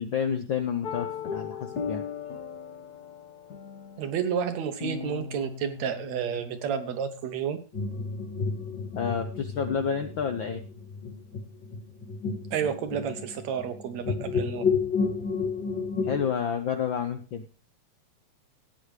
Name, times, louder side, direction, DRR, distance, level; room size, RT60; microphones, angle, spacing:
voice 1, 0.0-2.0 8.9-10.6 16.0-17.5, left 7 dB, 85° left, 6 dB, 1.0 m, -29 dB
sound 1, 0.8-7.5, left 7 dB, 60° left, 1.0 m, -38 dB
voice 2, 4.0-7.6 12.5-14.6, right 7 dB, 70° right, 9 dB, 2.0 m, -30 dB
sound 2, 7.7-16.3, left 5 dB, 40° left, 3.0 m, -31 dB
16.5 x 9.1 x 3.3 m, 0.35 s
omnidirectional pair, 3.4 m